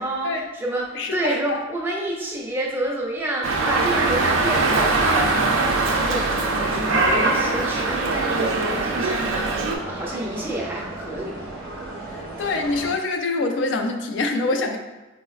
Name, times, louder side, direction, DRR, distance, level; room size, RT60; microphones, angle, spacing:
voice 1, 0.0-5.5 5.9-11.4, right 1 dB, 10° right, -2 dB, 0.4 m, -29 dB
voice 2, 0.9-1.6 12.1-14.8, left 3 dB, 65° left, 4 dB, 0.3 m, -25 dB
Dog, 3.4-9.8, right 3 dB, 85° right, 0.4 m, -22 dB
sound 1, 5.4-12.9, right 2 dB, 45° right, 0.7 m, -35 dB
4.7 x 2.0 x 2.3 m, 1.2 s
head